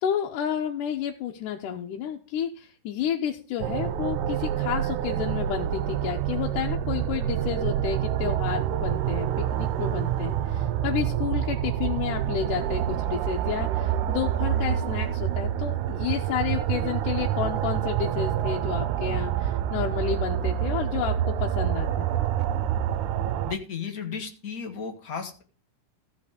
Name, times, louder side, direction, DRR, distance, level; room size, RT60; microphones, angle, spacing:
voice 1, 0.0-22.1, left 9 dB, 85° left, 1 dB, 2.3 m, -31 dB
sound 1, 3.6-23.5, right 11 dB, 80° right, 2.0 m, -27 dB
voice 2, 23.5-25.4, left 6 dB, 45° left, 4 dB, 1.3 m, -34 dB
14.5 x 5.2 x 5.0 m, 0.38 s
omnidirectional pair, 3.6 m